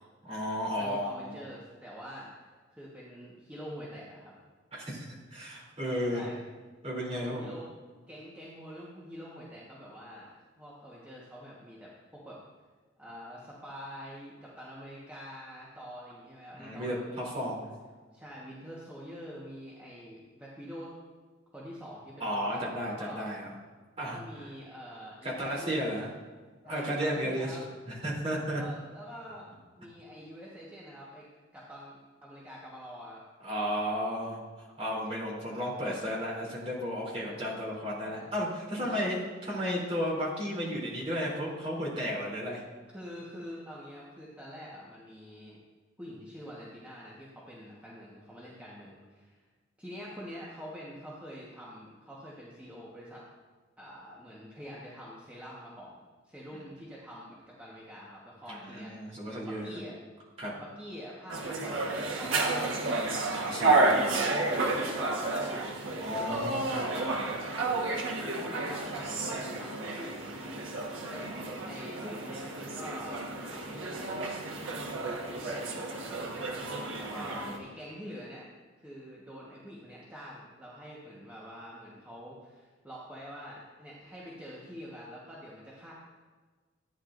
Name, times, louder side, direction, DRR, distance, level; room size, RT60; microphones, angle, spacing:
voice 1, 0.2-1.2 4.7-6.2 6.8-7.5 16.6-17.7 22.2-23.5 24.0-24.2 25.2-26.1 26.6-27.6 27.9-28.6 33.4-34.4 34.8-42.6 58.5-59.8 60.4-60.5 63.3-63.9 65.9-66.7 77.1-77.5, equal, 30° right, -5 dB, 3.2 m, -33 dB
voice 2, 0.8-2.3 2.7-4.3 5.7-6.4 7.2-7.7 8.1-10.3 10.6-12.4 13.0-17.5 18.1-20.9 21.5-23.3 23.9-25.9 26.6-27.6 28.5-29.5 29.8-31.3 31.5-33.2 38.1-38.3 38.8-39.0 42.9-45.6 46.0-49.4 49.8-53.2 53.8-56.0 56.2-58.9 59.5-59.9 60.6-62.8 63.7-65.8 66.6-69.3 69.5-70.5 70.8-73.2 73.4-74.2 75.2-78.5 78.8-85.9, equal, 10° right, -7 dB, 1.3 m, -46 dB
sound 1, 61.3-77.6, right 2 dB, 80° right, 1.3 m, -31 dB
14.5 x 9.7 x 2.6 m, 1.4 s
head